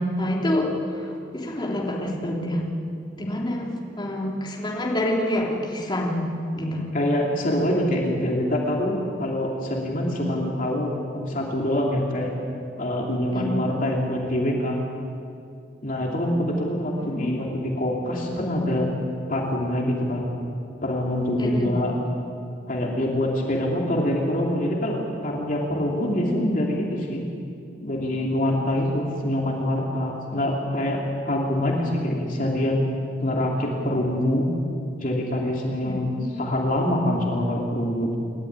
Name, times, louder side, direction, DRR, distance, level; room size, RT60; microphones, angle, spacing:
voice 1, 0.0-2.6 3.2-6.3 6.5-6.9 13.3-13.6 17.0-17.4 21.4-21.7 28.8-28.9 29.4-29.5 35.8-36.0, left 1 dB, 25° left, -3 dB, 3.2 m, -27 dB
voice 2, 6.9-12.3 12.8-14.8 15.8-18.9 19.3-20.3 20.8-22.0 22.7-27.3 27.8-31.0 31.2-32.8 33.2-34.5 34.9-38.2, left 1 dB, 45° left, -1 dB, 3.0 m, -25 dB
29.0 x 13.0 x 9.7 m, 2.5 s
head